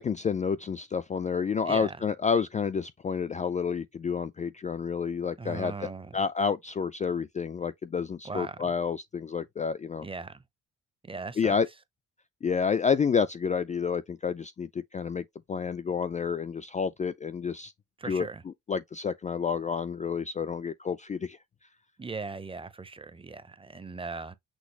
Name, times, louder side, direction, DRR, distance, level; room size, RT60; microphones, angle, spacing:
voice 1, 0.0-10.0 11.4-11.7 12.4-17.7 18.1-18.3 18.7-21.4, left 6 dB, 25° left, 0.3 m, -29 dB
voice 2, 1.7-2.0 5.4-6.2 8.2-8.6 10.0-10.4 11.0-11.5 18.0-18.4 22.0-24.3, right 4 dB, 20° right, 0.6 m, -38 dB
6.2 x 2.4 x 3.3 m
cardioid pair, 90°, 30 cm